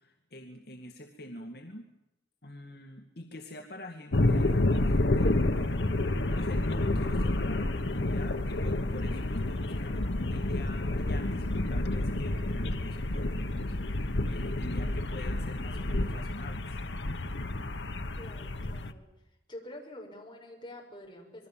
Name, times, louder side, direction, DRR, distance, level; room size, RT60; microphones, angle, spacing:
voice 1, 0.0-1.9 2.4-5.9 6.3-16.8, left 1 dB, 60° left, 3 dB, 2.2 m, -45 dB
sound 1, 4.1-18.9, left 2 dB, 85° left, 1.2 m, -29 dB
voice 2, 18.2-19.1 19.5-21.5, left 1 dB, 25° left, 0 dB, 6.3 m, -46 dB
27.0 x 22.0 x 7.3 m, 0.89 s
head